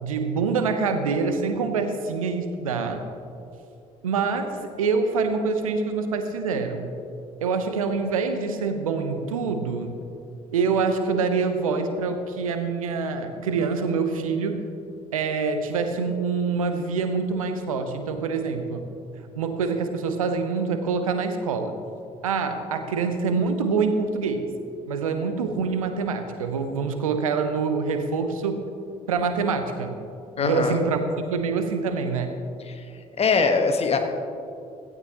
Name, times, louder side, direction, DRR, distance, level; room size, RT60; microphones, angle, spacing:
voice 1, 0.0-3.0 4.0-6.9 7.4-9.9 10.5-14.6 15.1-18.9 19.2-21.7 22.2-24.5 24.9-28.6 29.1-30.0 30.4-32.3, right 5 dB, 75° right, 8 dB, 0.9 m, -25 dB
voice 2, 30.4-30.8 32.7-32.8 33.2-34.0, left 4 dB, 35° left, 5 dB, 1.4 m, -22 dB
16.5 x 15.0 x 3.0 m, 2.7 s
figure-of-eight pair, 50°, 18 cm